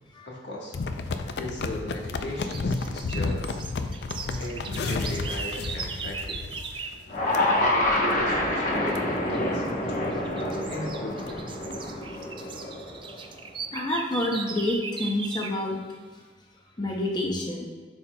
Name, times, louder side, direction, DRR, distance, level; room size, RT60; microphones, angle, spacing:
voice 1, 0.2-0.8 1.4-3.6 4.4-6.6 7.6-10.1 10.7-11.4, left 1 dB, 85° left, -2 dB, 1.4 m, -37 dB
sound 1, 0.7-7.0 7.3-7.4 7.9-8.2 8.6-8.7 8.9-9.0 9.5-9.7 10.1-10.2 10.5-10.6 10.9-11.7 12.3-12.4, left 3 dB, 70° left, 0.4 m, -32 dB
sound 2, 2.3-7.0 9.2-9.6 10.1-15.6, right 5 dB, 30° right, 0.3 m, -38 dB
sound 3, 7.1-13.3, left 1 dB, 45° left, 1.0 m, -27 dB
voice 2, 13.7-15.8 16.8-17.7, left 1 dB, 25° left, -1 dB, 0.6 m, -28 dB
10.5 x 4.4 x 2.2 m, 1.5 s
head